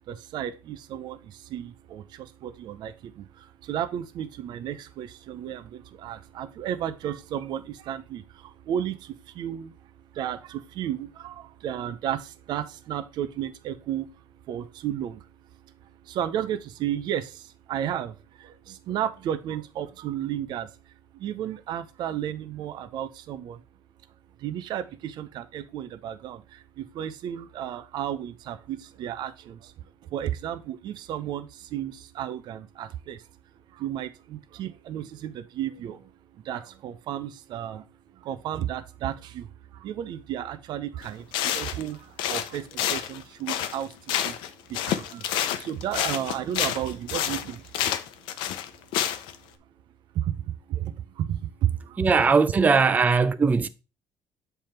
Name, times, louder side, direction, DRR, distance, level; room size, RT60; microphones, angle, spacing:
voice 1, 0.3-1.2 1.5-2.0 2.4-2.9 3.7-5.6 6.0-8.2 8.7-8.9 9.4-9.7 10.2-11.3 11.6-12.2 12.5-14.1 14.5-15.2 16.1-17.3 17.7-18.1 18.7-20.7 21.2-23.6 24.4-26.4 27.0-29.6 30.1-31.5 31.7-33.2 33.8-36.0 36.5-37.8 38.3-39.4 39.8-41.2 41.5-42.0 42.3-42.6 42.9-43.9 44.2-44.3 44.8-45.2 45.6-47.6 50.2-50.3 50.7-50.8 51.3-51.4, right 10 dB, 65° right, 0.6 m, -32 dB
sound 1, 41.0-41.1 41.3-41.9 42.2-44.5 44.7-49.4, left 10 dB, 85° left, 0.7 m, -28 dB
voice 2, 52.0-53.7, right 5 dB, 20° right, 0.4 m, -20 dB
7.5 x 3.4 x 4.3 m
cardioid pair, 115°, 8 cm